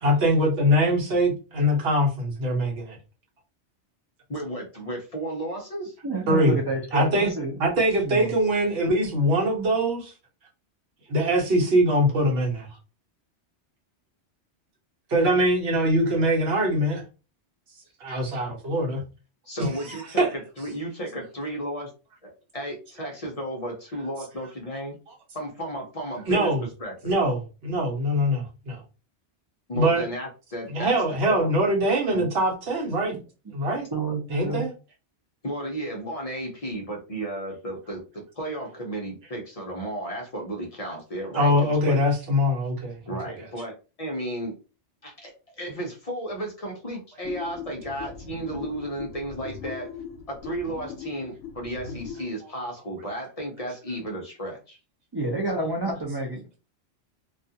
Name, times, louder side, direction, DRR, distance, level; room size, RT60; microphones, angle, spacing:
voice 1, 0.0-3.0 6.3-6.6 6.9-7.3 7.6-10.1 11.1-12.7 15.1-17.0 18.0-19.0 19.9-20.3 26.3-26.6 27.0-28.8 29.7-30.0 30.7-33.1 33.5-33.9 34.3-34.7 41.3-42.9 43.2-43.3, equal, 60° right, -1 dB, 1.0 m, -23 dB
voice 2, 4.3-5.9 19.5-21.9 22.2-25.0 25.3-26.5 26.8-26.9 29.7-30.9 31.3-31.5 32.1-32.2 35.4-42.0 43.1-44.6 45.0-49.9 50.3-54.8, right 1 dB, 45° left, 0 dB, 0.5 m, -34 dB
voice 3, 6.0-7.6 8.0-8.3 33.1-33.2 33.9-34.6 55.1-56.4, right 2 dB, 40° right, -1 dB, 0.3 m, -28 dB
sound 1, 47.2-52.3, left 7 dB, 85° left, 0.9 m, -40 dB
2.3 x 2.3 x 2.6 m, 0.32 s
omnidirectional pair, 1.2 m